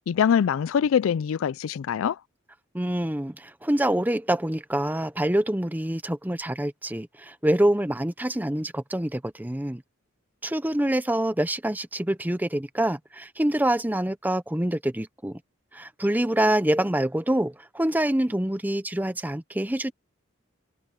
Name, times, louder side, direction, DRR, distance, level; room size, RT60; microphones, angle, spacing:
voice 1, 0.1-2.2, left 7 dB, 75° left, 0.3 m, -23 dB
voice 2, 2.7-9.8 10.4-15.4 15.7-19.9, right 1 dB, 10° right, 0.7 m, -26 dB
head